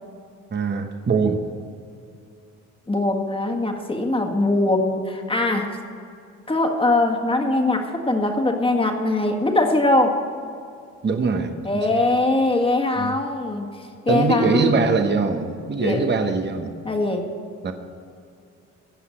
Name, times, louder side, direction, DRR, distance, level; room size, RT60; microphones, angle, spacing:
voice 1, 0.5-1.4 11.0-11.5 11.9-12.0 13.0-13.2 14.1-16.7 17.6-17.7, right 4 dB, 35° right, 6 dB, 1.1 m, -22 dB
voice 2, 2.9-5.8 6.5-10.2 11.6-14.9 15.8-16.0 16.8-17.3, left 2 dB, 15° left, 2 dB, 1.8 m, -22 dB
16.0 x 5.7 x 8.5 m, 2.4 s
cardioid pair, 90°, 30 cm